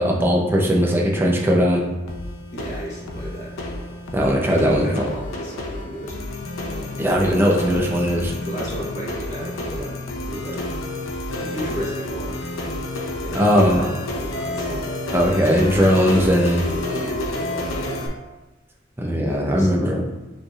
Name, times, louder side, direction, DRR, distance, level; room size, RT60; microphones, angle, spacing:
voice 1, 0.0-1.8 4.1-4.9 7.0-8.3 13.3-13.8 15.1-16.6 19.0-20.0, equal, 10° right, -2 dB, 0.6 m, -19 dB
sound 1, 2.1-18.1, left 2 dB, 90° left, 0.6 m, -30 dB
voice 2, 2.5-3.5 4.4-6.2 6.7-7.0 8.4-10.0 10.3-10.6 11.3-12.4 13.2-14.9 15.7-18.1 19.3-19.7, equal, 35° left, -6 dB, 1.2 m, -33 dB
6.3 x 3.3 x 2.4 m, 1.1 s
head